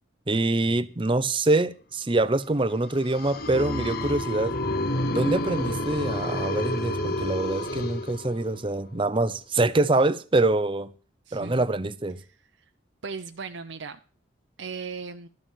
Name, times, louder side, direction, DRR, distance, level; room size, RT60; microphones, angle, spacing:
voice 1, 0.3-4.6 5.1-10.9 11.3-12.2, right 2 dB, 25° right, 0.7 m, -25 dB
sound 1, 2.8-8.7, left 1 dB, 55° left, 1.2 m, -30 dB
sound 2, 3.5-7.8, equal, 15° left, 1.1 m, -36 dB
voice 2, 11.3-11.7 13.0-14.0 14.6-15.3, right 5 dB, 75° right, 0.7 m, -37 dB
13.0 x 7.5 x 7.2 m
head